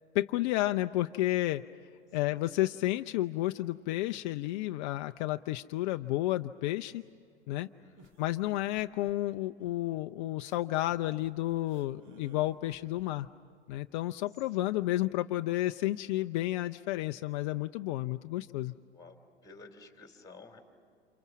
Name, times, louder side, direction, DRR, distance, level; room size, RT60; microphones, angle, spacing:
voice 1, 0.1-1.6 2.1-7.0 7.5-7.7 8.2-13.3 13.7-18.7, left 16 dB, 45° left, 8 dB, 0.5 m, -31 dB
voice 2, 7.8-8.1 14.6-14.7 18.9-19.2 19.4-20.6, left 3 dB, 10° left, 4 dB, 3.2 m, -53 dB
sound 1, 8.0-13.3, right 5 dB, 40° right, 1.8 m, -58 dB
29.5 x 27.5 x 6.1 m, 2.3 s
figure-of-eight pair, 95°, 34 cm